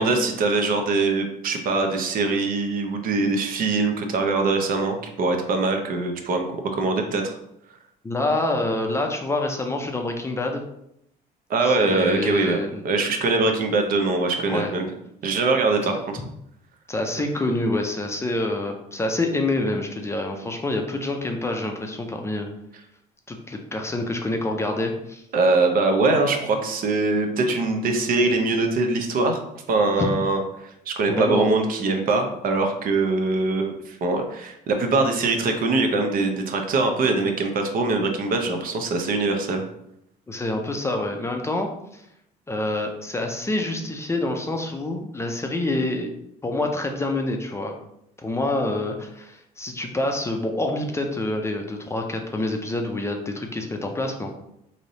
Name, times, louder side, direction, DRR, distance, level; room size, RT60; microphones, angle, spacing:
voice 1, 0.0-7.4 11.5-14.9 15.2-16.2 25.3-29.4 29.7-39.6, right 3 dB, 60° right, 4 dB, 0.7 m, -23 dB
voice 2, 8.0-10.6 11.6-12.8 14.4-14.7 15.8-16.2 16.9-22.5 23.3-25.2 30.0-30.1 31.1-31.5 40.3-42.0 42.5-46.1 46.4-47.7 48.2-54.3, left 2 dB, 15° left, 3 dB, 0.5 m, -27 dB
3.2 x 2.7 x 3.9 m, 0.79 s
cardioid pair, 110°, 17 cm